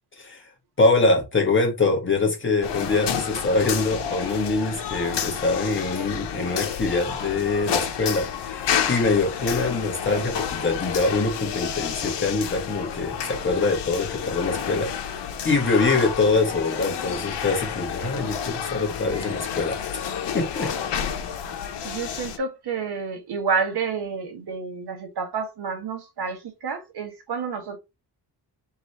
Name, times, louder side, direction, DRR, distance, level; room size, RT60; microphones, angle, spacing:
voice 1, 0.8-20.1 20.3-20.7, left 3 dB, 30° left, 1.5 m, -24 dB
sound 1, 2.6-22.4, left 8 dB, 90° left, 0.9 m, -30 dB
voice 2, 21.8-27.8, right 5 dB, 65° right, 1.4 m, -29 dB
3.7 x 3.1 x 4.1 m
wide cardioid pair, 150°, 41 cm